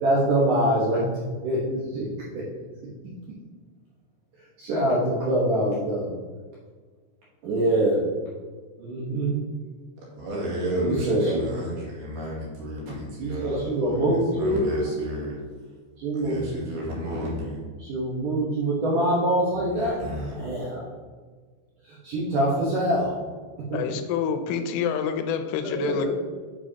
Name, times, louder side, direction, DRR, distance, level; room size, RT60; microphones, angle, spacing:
voice 1, 0.0-1.1 1.4-2.1 2.3-2.4 4.6-6.1 7.4-8.0 8.8-9.4 10.8-11.5 13.2-14.6 16.0-16.4 17.8-20.0 20.3-20.9 22.0-23.2 23.7-23.8 25.6-26.1, right 1 dB, 75° right, -7 dB, 1.9 m, -24 dB
voice 2, 10.2-15.4 16.1-17.6 19.7-20.3, right 1 dB, 60° right, -5 dB, 3.4 m, -32 dB
voice 3, 23.7-26.1, left 7 dB, 85° left, 8 dB, 3.0 m, -27 dB
8.0 x 7.4 x 2.8 m, 1.5 s
omnidirectional pair, 5.6 m